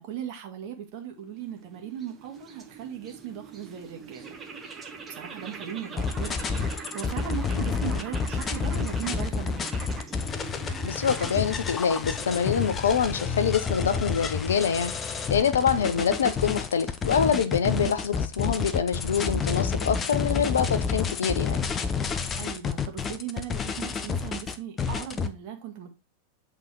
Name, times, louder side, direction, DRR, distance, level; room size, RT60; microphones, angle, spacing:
voice 1, 0.0-4.3 4.7-6.4 6.9-9.7 17.6-17.9 22.3-25.9, right 9 dB, 45° right, 1.7 m, -38 dB
sound 1, 1.2-14.6, right 5 dB, 20° right, 1.5 m, -43 dB
sound 2, 6.0-25.3, left 5 dB, 20° left, 0.8 m, -29 dB
voice 2, 10.8-14.9 15.3-21.6, left 7 dB, 65° left, 0.8 m, -25 dB
8.0 x 4.0 x 4.5 m
figure-of-eight pair, 90°, 0 cm